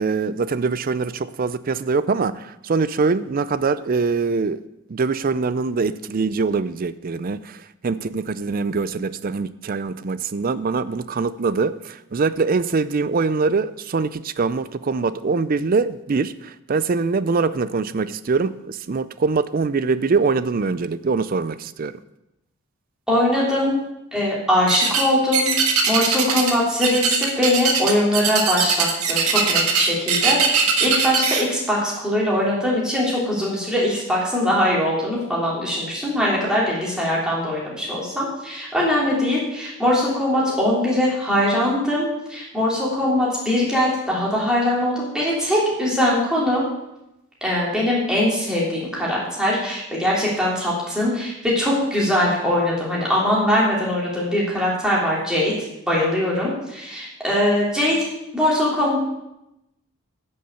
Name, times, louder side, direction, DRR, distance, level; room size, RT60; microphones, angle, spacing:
voice 1, 0.0-4.6 4.9-21.9, right 4 dB, 40° right, 15 dB, 0.4 m, -23 dB
voice 2, 23.1-23.8 24.1-25.5 25.9-46.6 47.4-55.5 55.9-58.0 58.3-59.0, left 1 dB, 5° right, -6 dB, 3.2 m, -21 dB
sound 1, 24.7-25.1 25.3-26.5 26.8-31.4, right 6 dB, 85° right, 1.5 m, -20 dB
9.9 x 6.6 x 6.8 m, 0.88 s
head